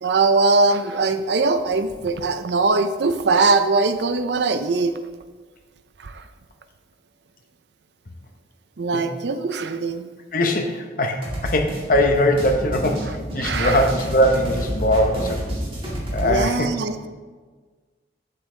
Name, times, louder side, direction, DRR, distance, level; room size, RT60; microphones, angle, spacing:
voice 1, 0.0-4.9 6.0-6.2 8.8-10.1 13.4-13.8 16.2-17.1, right 3 dB, 70° right, 10 dB, 0.5 m, -21 dB
voice 2, 10.3-15.4 16.1-16.7, left 1 dB, 50° left, 4 dB, 0.8 m, -21 dB
sound 1, 11.2-16.4, equal, 30° right, 2.1 m, -29 dB
8.2 x 7.6 x 3.3 m, 1.4 s
head